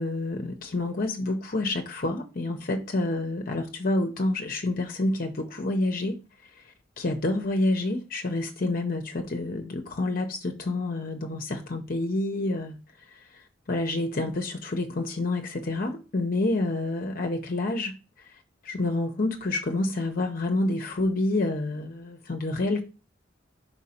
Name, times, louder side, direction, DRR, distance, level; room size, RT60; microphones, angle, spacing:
voice 1, 0.0-6.2 6.6-6.7 7.0-12.8 13.1-18.3 18.6-22.8, left 2 dB, 50° left, 0.7 m, -28 dB
5.2 x 4.4 x 4.3 m
head